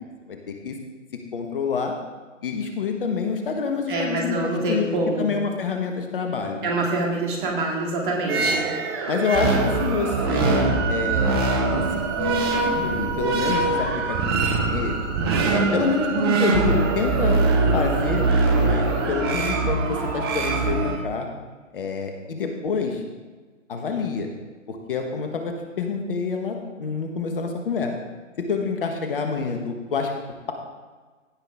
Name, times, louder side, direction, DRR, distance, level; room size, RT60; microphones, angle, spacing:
voice 1, 0.3-0.7 1.3-1.9 2.4-4.9 5.2-6.7 8.4-8.6 9.1-11.4 11.7-15.0 15.5-17.4 17.7-18.2 18.5-21.3 21.7-23.0 23.7-24.3 24.7-27.9 28.5-30.1, left 5 dB, 45° left, 4 dB, 1.3 m, -27 dB
voice 2, 3.9-5.3 6.6-8.6, right 2 dB, 40° right, -1 dB, 2.4 m, -25 dB
sound 1, 8.3-21.0, right 3 dB, 20° right, 0.8 m, -22 dB
16.0 x 6.0 x 3.6 m, 1.4 s
figure-of-eight pair, 135°, 38 cm